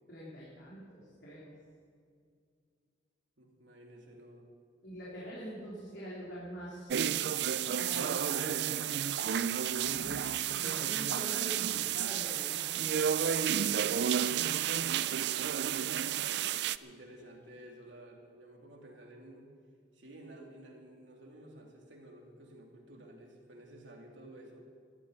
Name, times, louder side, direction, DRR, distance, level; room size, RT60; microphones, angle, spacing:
voice 1, 0.1-1.5 4.8-7.1 7.7-9.3 10.5-14.3, equal, 70° left, -8 dB, 4.0 m, -45 dB
voice 2, 3.4-4.5 16.8-19.5 19.9-24.7, right 1 dB, 80° right, 0 dB, 2.9 m, -52 dB
sound 1, 6.9-16.8, right 9 dB, 60° right, 0.4 m, -31 dB
Water / Toilet flush, 9.7-17.4, left 1 dB, 15° left, 1.5 m, -54 dB
14.5 x 9.7 x 9.6 m, 2.1 s
head